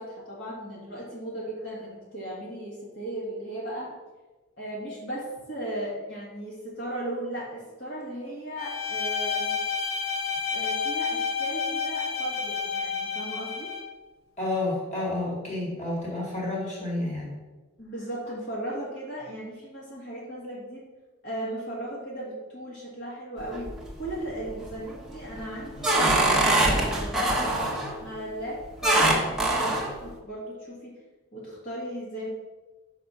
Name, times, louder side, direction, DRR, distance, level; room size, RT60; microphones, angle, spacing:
voice 1, 0.0-3.9 4.6-9.6 10.5-13.7 17.8-20.9 21.2-23.7 24.0-27.3 28.0-30.9 31.3-32.3, right 1 dB, 50° left, -6 dB, 1.9 m, -36 dB
Bowed string instrument, 8.6-13.9, left 5 dB, 70° left, 0.7 m, -30 dB
voice 2, 14.4-17.4, left 2 dB, 35° left, -4 dB, 2.1 m, -30 dB
sound 1, 23.4-24.0 24.5-24.9 25.4-28.0 28.8-29.9, right 2 dB, ahead, 0.9 m, -23 dB
6.2 x 4.9 x 5.5 m, 1.2 s
head